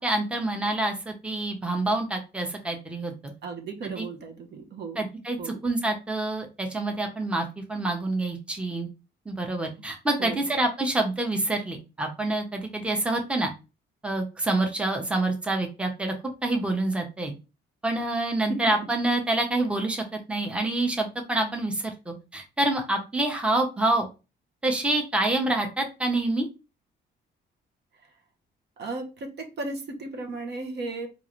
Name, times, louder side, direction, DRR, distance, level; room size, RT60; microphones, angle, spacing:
voice 1, 0.0-3.1 3.8-4.1 5.0-8.9 9.3-13.5 14.0-16.1 16.4-17.3 17.8-24.1 24.6-26.5, right 2 dB, 5° right, 3 dB, 0.8 m, -27 dB
voice 2, 3.4-5.0 5.4-5.6 10.2-10.5 18.5-18.6 28.8-31.1, right 3 dB, 60° right, 3 dB, 0.9 m, -35 dB
3.7 x 2.5 x 3.0 m, 0.29 s
cardioid pair, 90°, 20 cm